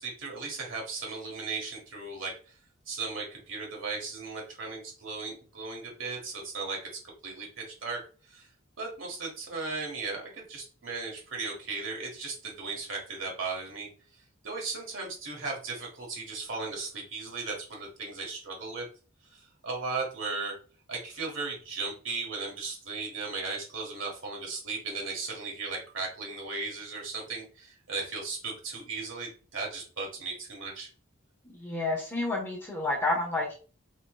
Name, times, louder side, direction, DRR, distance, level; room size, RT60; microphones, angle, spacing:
voice 1, 0.0-2.5 2.8-6.8 7.2-8.5 8.8-13.9 14.4-18.9 19.2-20.5 20.9-30.9, right 4 dB, 70° right, -1 dB, 1.7 m, -36 dB
voice 2, 31.5-33.6, left 2 dB, 10° left, -3 dB, 1.4 m, -30 dB
4.2 x 4.1 x 2.4 m, 0.37 s
head